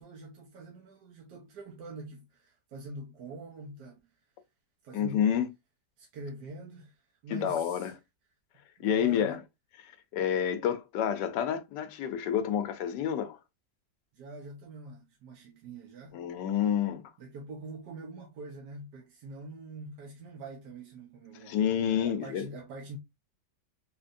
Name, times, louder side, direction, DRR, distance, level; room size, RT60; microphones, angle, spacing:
voice 1, 0.0-4.1 4.8-5.3 6.0-7.9 8.8-9.4 14.1-16.2 17.2-23.0, right 2 dB, 75° right, 1.4 m, -45 dB
voice 2, 4.9-5.5 7.3-7.9 8.8-9.4 9.8-13.4 16.1-17.1 21.5-22.5, left 9 dB, 85° left, 1.3 m, -29 dB
4.3 x 2.8 x 2.5 m
omnidirectional pair, 1.8 m